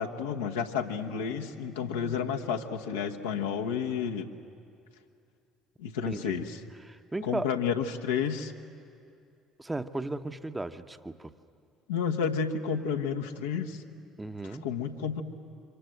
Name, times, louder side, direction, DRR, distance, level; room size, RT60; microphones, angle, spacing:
voice 1, 0.0-4.3 5.8-6.6 7.2-8.5 11.9-13.8 14.6-15.2, left 7 dB, 75° left, 2 dB, 1.2 m, -31 dB
voice 2, 6.1-6.4 6.8-7.5 9.6-11.3 14.2-14.7, right 2 dB, 15° right, 10 dB, 0.9 m, -36 dB
28.0 x 25.0 x 7.9 m, 2.5 s
figure-of-eight pair, 55°, 0 cm